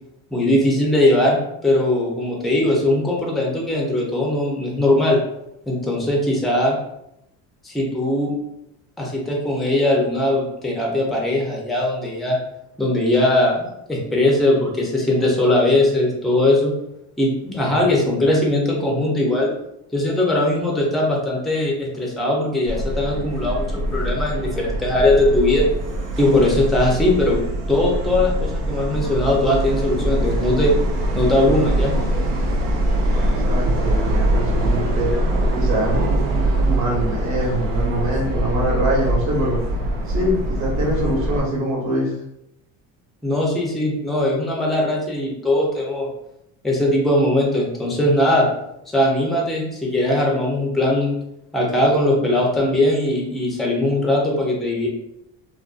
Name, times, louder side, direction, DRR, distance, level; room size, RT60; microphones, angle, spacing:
voice 1, 0.3-5.2 5.7-6.8 7.6-8.3 9.0-12.4 12.8-16.7 17.2-19.5 19.9-25.7 26.2-27.4 27.7-30.7 31.1-31.9 43.2-46.1 46.6-48.5 48.9-51.1 51.5-54.9, left 1 dB, ahead, -2 dB, 0.4 m, -20 dB
Subway metro underground, 22.7-41.4, right 1 dB, 90° right, 0.7 m, -22 dB
voice 2, 33.0-35.1 35.5-39.6 40.1-42.2, right 1 dB, 45° right, -3 dB, 1.1 m, -24 dB
2.5 x 2.2 x 2.4 m, 0.81 s
cardioid pair, 120°, 38 cm